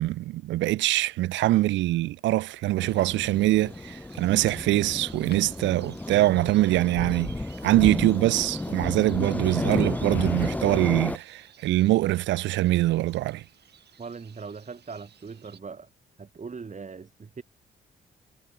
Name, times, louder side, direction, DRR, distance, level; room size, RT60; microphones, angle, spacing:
voice 1, 0.0-13.4, right 16 dB, 80° right, 0.4 m, -24 dB
sound 1, 2.7-10.9, left 8 dB, 65° left, 4.1 m, -54 dB
sound 2, 2.8-11.2, left 2 dB, 10° left, 0.5 m, -32 dB
sound 3, 2.8-15.6, right 9 dB, 65° right, 2.8 m, -55 dB
voice 2, 14.0-15.9 16.2-17.4, right 5 dB, 40° right, 3.2 m, -40 dB
supercardioid pair, 65°, 19 cm